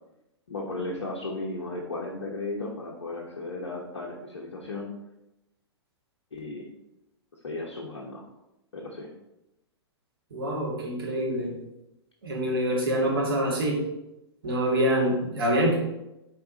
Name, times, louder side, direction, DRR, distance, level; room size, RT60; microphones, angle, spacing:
voice 1, 0.5-4.9 6.3-6.7 7.4-8.3 8.7-9.1, left 2 dB, 65° left, -2 dB, 1.0 m, -35 dB
voice 2, 10.3-11.5 12.2-13.8 14.4-15.8, equal, 55° right, -3 dB, 2.0 m, -25 dB
5.8 x 4.1 x 4.0 m, 0.90 s
figure-of-eight pair, 110°, 14 cm